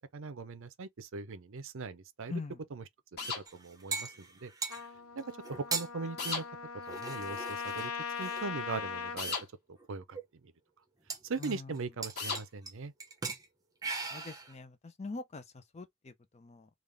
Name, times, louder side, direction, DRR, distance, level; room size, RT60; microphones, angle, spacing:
voice 1, 0.1-2.3 2.7-2.8 3.3-4.5 5.2-6.4 6.9-7.9 8.2-9.4 9.9-10.2 10.4-10.5 11.2-12.9, right 4 dB, 60° right, 0.6 m, -40 dB
sound 1, 3.2-3.4 6.2-6.5 9.2-9.4 12.2-12.4, left 4 dB, 50° left, 1.7 m, -35 dB
sound 2, 3.5-4.9 5.4-5.9 6.8-8.4 9.3-9.4 9.8-9.9 10.1-10.2 11.1-11.8 12.0-12.7 13.0-13.5 13.8-14.6, right 4 dB, 15° right, 0.8 m, -39 dB
Trumpet, 4.7-9.2, left 6 dB, 70° left, 0.7 m, -40 dB
voice 2, 14.1-16.7, left 3 dB, 30° left, 0.5 m, -43 dB
3.6 x 2.4 x 3.2 m
head